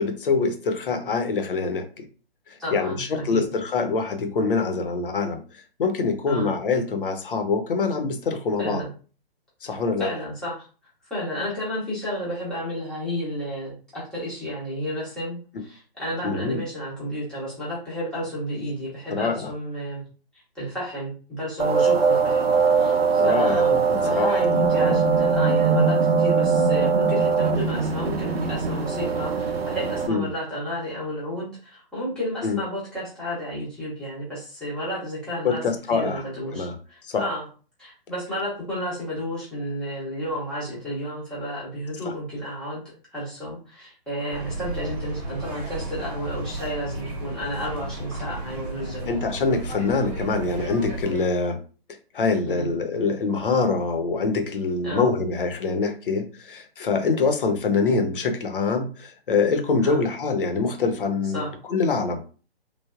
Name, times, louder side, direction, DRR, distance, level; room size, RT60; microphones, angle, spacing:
voice 1, 0.0-2.1 2.5-8.8 9.6-10.1 16.2-16.6 19.1-19.5 23.2-24.4 30.1-30.3 32.4-32.6 35.4-36.2 36.5-36.8 37.0-37.2 42.1-42.2 49.1-51.6 52.1-62.2, left 4 dB, 60° left, 6 dB, 0.7 m, -25 dB
voice 2, 2.6-3.5 6.3-6.5 8.6-8.9 9.6-10.7 11.1-20.0 20.5-23.8 24.0-35.6 35.9-37.4 37.8-49.1 52.4-52.7 54.8-55.0 59.8-60.0 61.3-61.5, equal, ahead, -8 dB, 0.6 m, -32 dB
sound 1, 21.6-30.1, right 5 dB, 75° right, 0.6 m, -21 dB
sound 2, 44.3-51.2, right 2 dB, 20° right, 1.0 m, -34 dB
3.2 x 2.1 x 2.4 m, 0.37 s
figure-of-eight pair, 135°, 31 cm